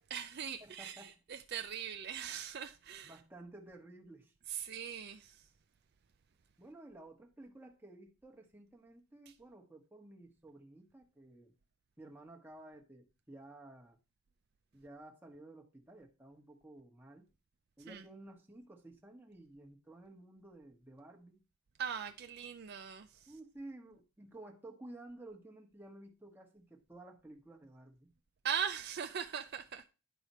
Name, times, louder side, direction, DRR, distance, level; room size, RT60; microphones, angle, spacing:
voice 1, 0.1-3.2 4.5-5.5 17.9-18.0 21.8-23.3 28.4-29.8, right 8 dB, 50° right, 0.4 m, -40 dB
voice 2, 0.6-1.2 3.0-4.3 6.6-11.5 12.0-14.0 14.7-17.3 17.8-21.4 23.3-28.1, right 2 dB, 10° right, 1.1 m, -53 dB
10.5 x 4.9 x 4.2 m
head